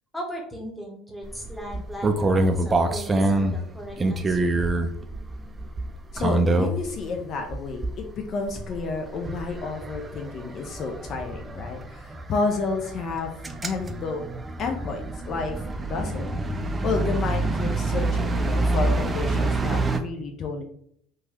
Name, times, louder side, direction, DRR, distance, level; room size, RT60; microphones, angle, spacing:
voice 1, 0.1-4.5, equal, ahead, 0 dB, 0.9 m, -38 dB
sound 1, 1.2-7.0 7.5-8.1 8.4-20.0, right 2 dB, 25° right, 0.3 m, -26 dB
voice 2, 6.1-13.3 13.6-14.2 14.6-16.3 16.8-20.6, left 4 dB, 50° left, 3 dB, 0.4 m, -30 dB
3.0 x 2.2 x 2.8 m, 0.66 s
hypercardioid pair, 75°, 0 cm